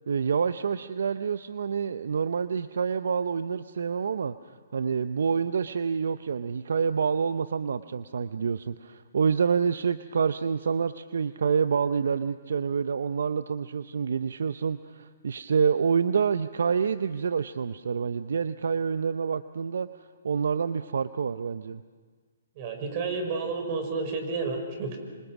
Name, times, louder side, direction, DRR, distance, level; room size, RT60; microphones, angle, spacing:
voice 1, 0.1-4.3 4.7-19.9 20.2-21.8, right 6 dB, 70° right, 12 dB, 0.7 m, -27 dB
voice 2, 22.6-25.0, right 4 dB, 40° right, 5 dB, 5.5 m, -31 dB
26.5 x 26.5 x 6.1 m, 1.5 s
hypercardioid pair, 140°, 0 cm